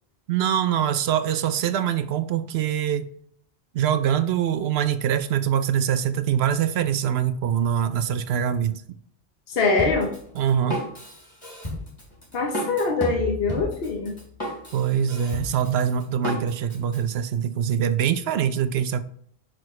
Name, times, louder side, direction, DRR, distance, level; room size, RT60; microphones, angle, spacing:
voice 1, 0.3-3.1 3.7-8.8 10.3-10.8 14.7-19.0, right 9 dB, 80° right, 0.8 m, -24 dB
voice 2, 9.5-10.1 12.3-14.2, left 3 dB, 70° left, 1.1 m, -23 dB
Drum kit, 9.8-17.0, left 1 dB, 30° left, 2.7 m, -32 dB
6.6 x 6.2 x 3.1 m
omnidirectional pair, 1.1 m